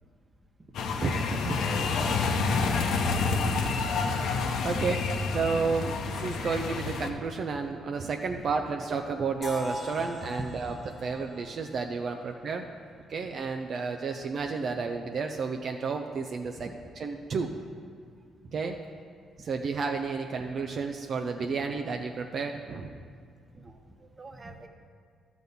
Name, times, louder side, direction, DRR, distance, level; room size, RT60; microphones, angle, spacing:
sound 1, 0.7-7.1, left 4 dB, 75° left, 0.8 m, -28 dB
voice 1, 1.0-1.6 3.7-4.0 4.6-5.0 5.3-10.7 11.0-12.7 13.1-16.7 17.0-17.5 18.5-18.8 19.4-23.0, right 4 dB, 55° right, 3 dB, 0.5 m, -31 dB
voice 2, 4.5-5.0 10.7-10.8 11.7-11.8 12.0-12.3 13.2-13.3 14.0-14.1 16.6-16.7 18.6-18.8 23.5-24.7, right 2 dB, 25° right, 4 dB, 1.0 m, -48 dB
sound 2, 9.4-13.3, left 2 dB, 25° left, 1.2 m, -41 dB
12.0 x 4.1 x 7.0 m, 2.1 s
cardioid pair, 90°, 0 cm